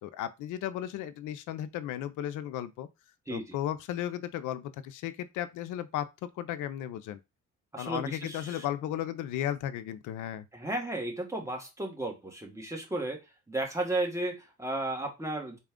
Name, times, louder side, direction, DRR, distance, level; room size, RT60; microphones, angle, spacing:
voice 1, 0.0-2.9 3.3-7.2 7.8-10.5, left 11 dB, 85° left, 0.5 m, -35 dB
voice 2, 7.7-8.6 10.5-13.2 13.5-15.6, right 2 dB, 10° right, 1.4 m, -34 dB
4.0 x 2.3 x 3.6 m
cardioid pair, 90°, 30 cm